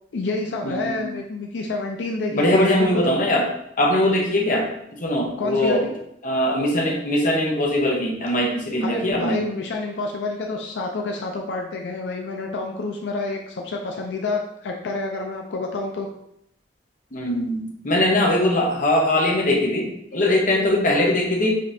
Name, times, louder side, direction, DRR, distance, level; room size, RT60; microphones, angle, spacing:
voice 1, 0.1-3.1 5.4-6.0 8.8-16.1, left 3 dB, 85° left, 1 dB, 0.4 m, -28 dB
voice 2, 0.6-1.0 2.3-3.4 3.8-4.7 5.0-5.8 6.2-9.4 17.1-21.5, left 1 dB, 50° left, 0 dB, 0.8 m, -21 dB
5.1 x 2.8 x 2.6 m, 0.75 s
head